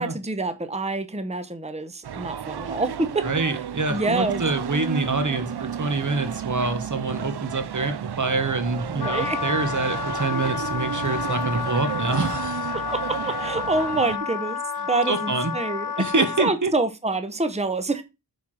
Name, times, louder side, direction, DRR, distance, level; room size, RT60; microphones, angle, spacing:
voice 1, 0.0-3.3 3.9-4.4 8.9-9.4 12.7-14.6 14.9-16.0 16.4-18.0, right 3 dB, 15° right, 1.0 m, -26 dB
sound 1, 2.0-14.2, right 9 dB, 65° right, 0.5 m, -32 dB
voice 2, 3.2-12.7 15.1-15.5 16.0-16.7, right 3 dB, 45° right, 1.4 m, -26 dB
Wind instrument woodwind instrument, 9.0-16.6, left 6 dB, 50° left, 0.7 m, -30 dB
8.2 x 4.6 x 4.9 m
wide cardioid pair, 70°, 43 cm